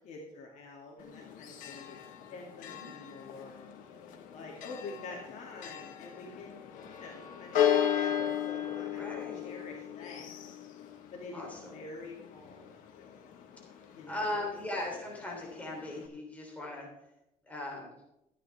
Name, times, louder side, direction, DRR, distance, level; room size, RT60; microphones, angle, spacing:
voice 1, 0.0-2.0 2.3-3.7 4.3-6.6 6.9-10.4 11.1-11.5 11.7-12.8 13.9-14.5, left 3 dB, 60° left, -1 dB, 2.6 m, -47 dB
Church bell, 1.0-16.1, left 9 dB, 90° left, 1.6 m, -36 dB
voice 2, 9.0-9.5 11.3-11.8 13.7-16.9 17.5-17.9, left 1 dB, 10° left, -1 dB, 3.4 m, -38 dB
14.0 x 10.0 x 3.5 m, 0.87 s
cardioid pair, 130°, 13 cm